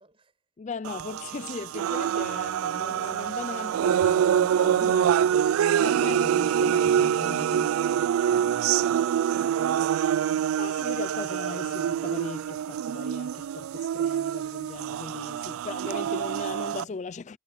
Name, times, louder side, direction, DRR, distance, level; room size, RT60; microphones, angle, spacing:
voice 1, 0.0-0.5 8.8-9.8, right 2 dB, 25° right, 5.2 m, -56 dB
voice 2, 0.6-5.5 5.8-7.8 8.1-8.2 10.6-17.4, left 4 dB, 35° left, 0.4 m, -38 dB
sound 1, 0.8-16.8, right 9 dB, 85° right, 0.3 m, -25 dB
head